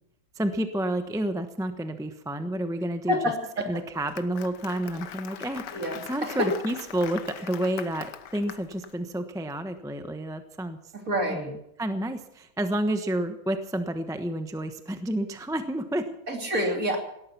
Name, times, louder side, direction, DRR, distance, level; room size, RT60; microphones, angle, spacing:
voice 1, 0.4-3.2 3.7-10.8 11.3-11.5 11.8-16.2 16.5-16.7, right 1 dB, 5° right, 8 dB, 0.8 m, -30 dB
voice 2, 3.1-3.7 5.7-6.5 11.1-11.5 16.3-17.0, equal, 45° right, 3 dB, 3.3 m, -27 dB
Applause, 3.8-8.9, left 9 dB, 65° left, 1.5 m, -41 dB
18.0 x 13.5 x 5.9 m, 0.80 s
omnidirectional pair, 2.1 m